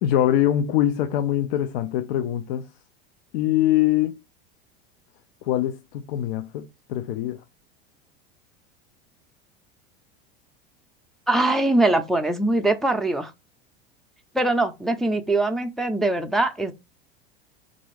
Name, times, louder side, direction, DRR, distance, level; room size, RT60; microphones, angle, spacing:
voice 1, 0.0-2.7 3.3-4.2 5.4-7.4, left 12 dB, 65° left, 0.5 m, -23 dB
voice 2, 11.3-13.3 14.3-16.7, right 2 dB, ahead, 0.5 m, -22 dB
3.6 x 2.6 x 3.1 m
hypercardioid pair, 90°, 30 cm